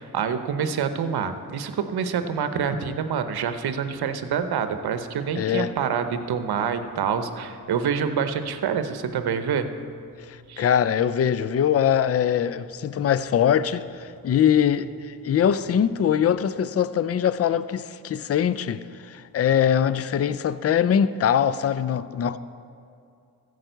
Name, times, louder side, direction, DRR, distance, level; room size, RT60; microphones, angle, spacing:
voice 1, 0.0-9.7 10.5-10.7, right 7 dB, 70° right, 0.9 m, -26 dB
sound 1, 2.1-16.4, left 2 dB, 80° left, 2.3 m, -52 dB
voice 2, 5.3-5.7 10.3-22.4, left 9 dB, 40° left, 0.5 m, -22 dB
14.0 x 4.9 x 7.9 m
cardioid pair, 60°, 40 cm